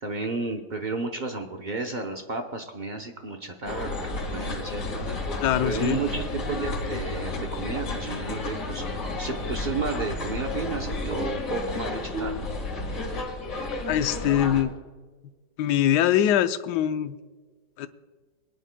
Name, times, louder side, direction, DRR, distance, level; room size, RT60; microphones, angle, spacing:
voice 1, 0.0-5.2 5.6-8.8 9.2-12.5, right 4 dB, 55° right, 3 dB, 0.5 m, -32 dB
sound 1, 3.7-14.6, left 2 dB, 45° left, 2.1 m, -31 dB
voice 2, 5.4-6.0 13.9-14.7 15.6-17.2 17.8-17.9, left 11 dB, 70° left, 11 dB, 1.1 m, -23 dB
22.0 x 10.0 x 2.2 m, 1.4 s
omnidirectional pair, 2.1 m